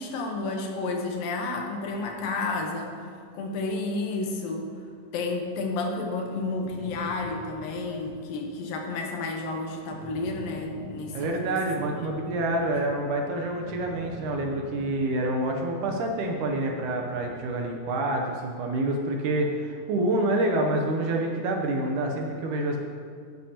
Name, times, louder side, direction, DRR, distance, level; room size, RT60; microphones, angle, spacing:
voice 1, 0.0-4.7 5.1-11.6 12.3-12.4, left 3 dB, 80° left, 2 dB, 2.7 m, -31 dB
sound 1, 6.4-17.3, equal, 45° right, 3.1 m, -45 dB
voice 2, 11.1-22.8, right 1 dB, 70° right, 1 dB, 2.1 m, -27 dB
13.0 x 9.9 x 2.9 m, 2.2 s
omnidirectional pair, 4.1 m